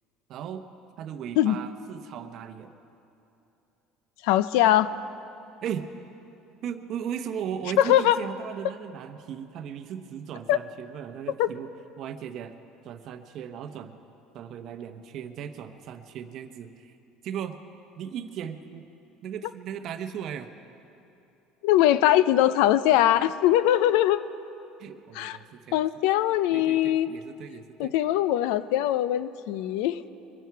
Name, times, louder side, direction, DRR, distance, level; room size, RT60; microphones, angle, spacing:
voice 1, 0.3-0.6 1.0-2.7 5.6-5.9 6.6-11.7 12.0-12.5 12.8-14.0 14.3-17.0 17.2-17.6 18.0-18.9 19.2-20.5 24.8-25.8 26.5-27.9, right 8 dB, 40° right, 8 dB, 0.8 m, -37 dB
voice 2, 4.2-5.0 7.8-8.2 10.5-10.6 11.4-11.5 21.6-24.2 25.1-25.4 25.7-27.1 27.8-30.0, left 13 dB, 75° left, 15 dB, 0.5 m, -21 dB
23.0 x 10.5 x 4.6 m, 2.8 s
cardioid pair, 170°, 0 cm